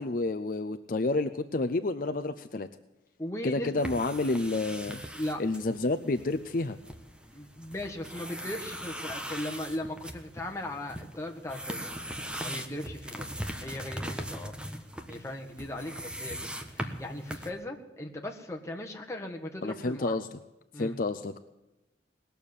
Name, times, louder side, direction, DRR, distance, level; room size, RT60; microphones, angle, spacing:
voice 1, 0.0-2.7 3.4-5.0 5.4-6.8 19.6-20.4 20.8-21.4, left 2 dB, 50° left, 9 dB, 0.6 m, -29 dB
voice 2, 3.2-3.8 5.1-5.4 7.3-11.9 12.4-13.3 13.6-14.5 15.1-16.5 16.7-20.2 20.7-21.0, left 1 dB, 15° left, 1 dB, 1.7 m, -38 dB
sound 1, 3.8-17.5, equal, 5° right, 1.3 m, -40 dB
19.5 x 7.0 x 9.9 m, 0.98 s
head